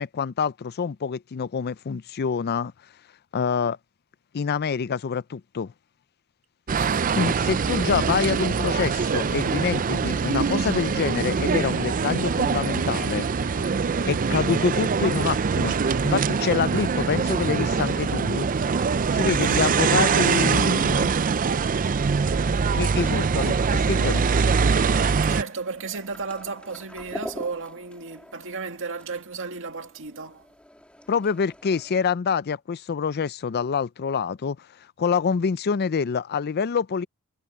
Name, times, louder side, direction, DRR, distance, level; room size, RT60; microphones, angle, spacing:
voice 1, 0.0-2.7 3.3-3.8 4.3-5.7 7.1-13.3 14.1-15.8 16.0-18.5 19.1-21.1 22.7-24.2 31.1-34.6 35.0-37.1, left 6 dB, 45° left, 0.4 m, -26 dB
sound 1, 6.7-25.4, right 5 dB, 40° right, 0.4 m, -23 dB
voice 2, 6.8-7.1 19.6-19.7 25.3-30.5, right 4 dB, 65° right, 2.1 m, -34 dB
sound 2, 7.4-18.0, right 4 dB, 80° right, 3.0 m, -42 dB
sound 3, 17.5-32.0, equal, 5° left, 2.1 m, -46 dB
head